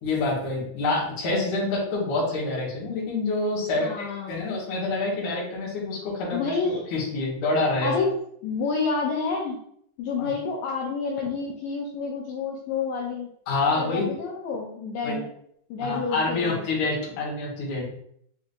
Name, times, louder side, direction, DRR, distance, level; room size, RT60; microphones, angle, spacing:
voice 1, 0.0-6.5 6.9-7.9 10.2-10.3 13.5-14.1 15.0-15.2 15.8-17.9, left 3 dB, 55° left, -6 dB, 1.7 m, -27 dB
voice 2, 3.7-4.4 6.3-6.9 7.8-8.1 8.4-9.6 10.0-13.3 13.8-15.3 15.7-16.7, left 4 dB, 80° left, -3 dB, 2.1 m, -29 dB
6.0 x 2.7 x 2.6 m, 0.69 s
omnidirectional pair, 4.5 m